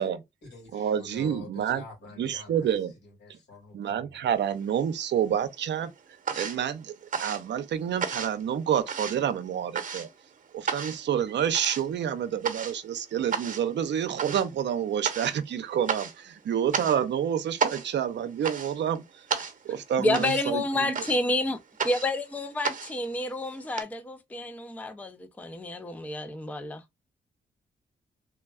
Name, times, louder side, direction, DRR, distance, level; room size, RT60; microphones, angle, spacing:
voice 1, 0.0-4.2, left 3 dB, 70° left, 2.0 m, -48 dB
voice 2, 0.7-1.8 2.2-2.9 3.7-5.9 6.4-6.9 7.2-10.1 10.5-19.0 19.6-20.9, right 9 dB, 75° right, 0.6 m, -28 dB
sound 1, 4.5-5.3 5.6-23.8, right 6 dB, 50° right, 0.8 m, -34 dB
voice 3, 20.0-21.6 21.8-26.8, left 2 dB, 10° left, 0.4 m, -29 dB
3.3 x 2.2 x 2.3 m
cardioid pair, 90°, 18 cm